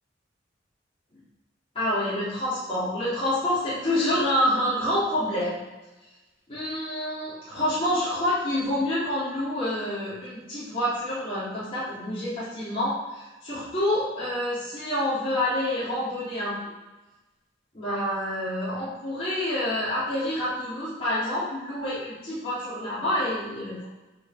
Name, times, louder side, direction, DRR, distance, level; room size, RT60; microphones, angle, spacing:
voice 1, 1.8-5.6 6.5-16.5 17.7-23.8, left 1 dB, 30° left, -12 dB, 3.7 m, -27 dB
9.7 x 5.9 x 7.7 m, 1.1 s
head